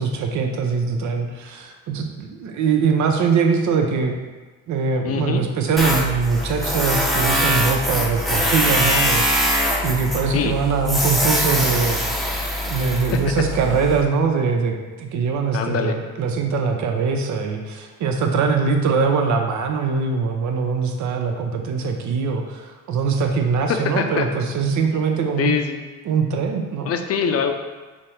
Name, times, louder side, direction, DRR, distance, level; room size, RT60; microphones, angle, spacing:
voice 1, 0.0-4.1 4.7-12.0 12.7-25.5 26.1-26.9, right 5 dB, 70° right, 3 dB, 0.7 m, -22 dB
voice 2, 5.0-5.4 10.3-10.5 13.1-13.2 15.5-15.9 23.7-24.3 25.4-25.8 26.8-27.5, left 7 dB, 50° left, 6 dB, 0.5 m, -23 dB
Tools, 5.8-14.0, equal, ahead, 0.6 m, -22 dB
5.1 x 2.1 x 4.3 m, 1.3 s
cardioid pair, 90°, 30 cm